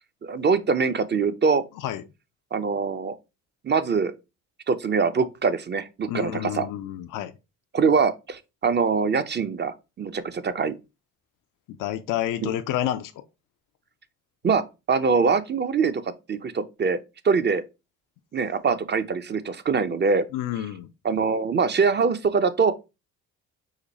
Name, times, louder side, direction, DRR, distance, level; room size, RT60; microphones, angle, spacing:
voice 1, 0.2-1.6 2.5-3.1 3.6-4.1 4.7-6.7 7.7-10.7 12.4-12.5 14.4-17.0 17.2-17.6 18.3-20.2 21.0-22.7, right 5 dB, 30° right, 0.6 m, -23 dB
voice 2, 6.1-7.3 11.7-13.2 20.3-20.9, left 12 dB, 65° left, 0.5 m, -29 dB
5.1 x 2.2 x 4.0 m
supercardioid pair, 60°, 35 cm